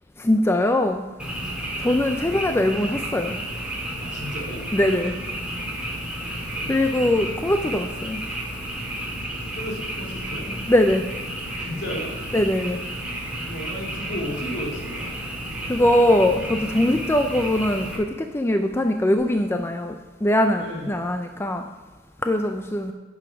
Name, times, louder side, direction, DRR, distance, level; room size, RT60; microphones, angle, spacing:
voice 1, 0.2-1.0 1.8-3.4 4.7-5.2 6.7-8.2 10.7-11.1 12.3-12.8 15.7-20.0 20.2-21.6 22.2-22.9, left 1 dB, 10° left, 6 dB, 0.4 m, -21 dB
Frog, 1.2-18.0, right 1 dB, 5° right, 2.0 m, -32 dB
voice 2, 4.0-4.7 6.5-7.2 9.5-10.5 11.6-12.1 13.5-15.1 20.6-21.0, equal, 60° left, -2 dB, 2.6 m, -34 dB
9.4 x 7.1 x 5.8 m, 1.4 s
head